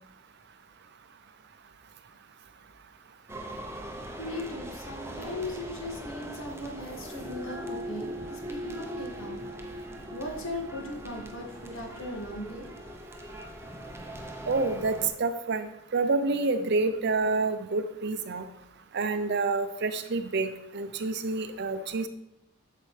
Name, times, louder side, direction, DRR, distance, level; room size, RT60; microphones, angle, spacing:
sound 1, 3.3-15.1, equal, 10° right, 0.7 m, -40 dB
voice 1, 4.2-9.4 9.8-12.7, left 1 dB, 70° left, 0 dB, 1.8 m, -38 dB
voice 2, 14.5-18.4 18.9-22.1, right 3 dB, 55° right, 10 dB, 0.6 m, -28 dB
8.3 x 6.7 x 3.2 m, 0.82 s
head